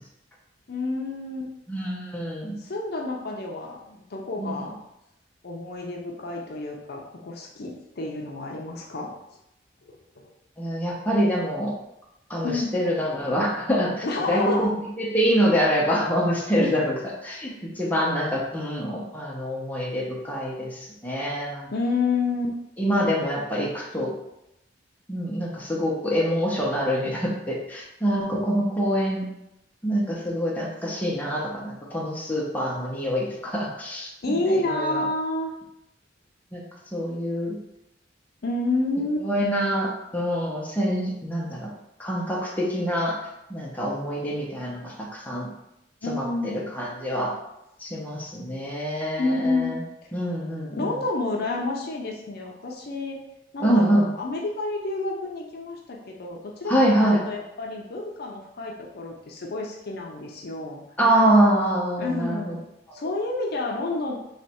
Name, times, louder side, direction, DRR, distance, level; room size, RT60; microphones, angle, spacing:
voice 1, 0.7-1.5 2.6-4.8 5.4-9.2 9.9-10.3 12.4-12.7 14.0-14.7 16.6-16.7 17.6-17.7 21.7-22.6 34.2-35.5 38.4-39.3 46.0-46.6 49.2-49.7 50.7-53.2 53.5-60.8 62.0-62.6 62.9-64.2, left 2 dB, 60° left, 0 dB, 0.6 m, -29 dB
voice 2, 1.7-2.6 4.4-4.6 10.6-11.7 12.3-16.9 17.2-21.7 22.8-24.1 25.1-29.3 29.8-35.0 36.5-36.6 36.9-37.6 39.2-41.7 42.0-43.2 43.5-45.5 46.1-47.3 47.8-49.8 50.1-51.0 53.6-54.1 56.7-57.2 61.0-62.6, equal, 10° left, -4 dB, 0.9 m, -25 dB
3.3 x 3.1 x 4.3 m, 0.86 s
head